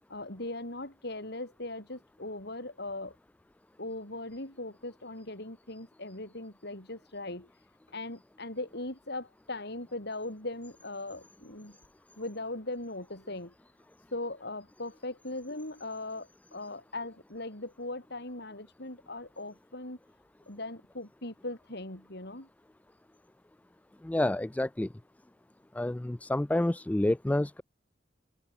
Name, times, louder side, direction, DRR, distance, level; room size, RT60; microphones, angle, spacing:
voice 1, 0.1-3.2 3.8-7.5 7.9-11.8 12.2-13.5 14.1-20.0 20.5-22.5, left 2 dB, 60° left, 6.0 m, -39 dB
voice 2, 24.0-24.9 25.7-27.6, left 1 dB, 10° left, 0.3 m, -28 dB
head